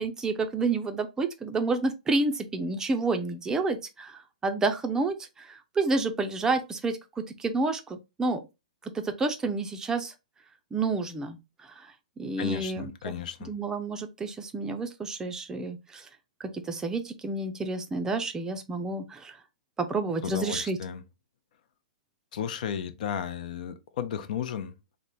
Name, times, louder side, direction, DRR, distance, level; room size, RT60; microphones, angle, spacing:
voice 1, 0.0-8.4 8.9-10.1 10.7-11.9 12.2-13.2 13.5-16.1 16.5-19.4 19.8-20.8, right 3 dB, 15° right, 0.5 m, -30 dB
voice 2, 12.4-13.5 20.2-21.0 22.3-25.0, left 8 dB, 65° left, 0.6 m, -34 dB
3.3 x 2.1 x 4.0 m
hypercardioid pair, 125°, 5 cm